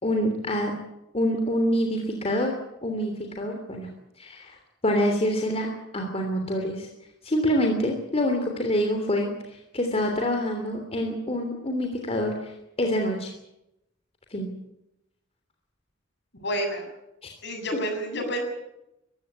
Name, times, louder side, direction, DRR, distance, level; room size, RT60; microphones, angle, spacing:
voice 1, 0.0-0.7 1.1-2.5 2.8-3.9 4.2-4.6 4.8-6.9 7.2-13.3 14.3-14.6 17.2-17.3, equal, 30° left, 3 dB, 3.2 m, -26 dB
voice 2, 16.4-16.8 17.4-18.4, equal, 60° left, 3 dB, 7.9 m, -29 dB
22.0 x 16.0 x 9.7 m, 0.87 s
head